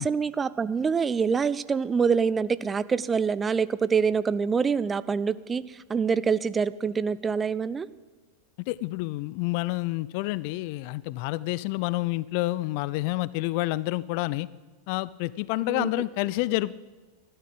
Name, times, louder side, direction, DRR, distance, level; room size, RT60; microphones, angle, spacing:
voice 1, 0.0-5.6 5.9-7.9 15.7-15.9, right 6 dB, 15° right, 17 dB, 0.5 m, -25 dB
voice 2, 8.7-14.5 14.9-16.8, left 19 dB, 45° left, 20 dB, 0.4 m, -28 dB
13.5 x 12.0 x 7.9 m, 1.3 s
figure-of-eight pair, 90°, 0 cm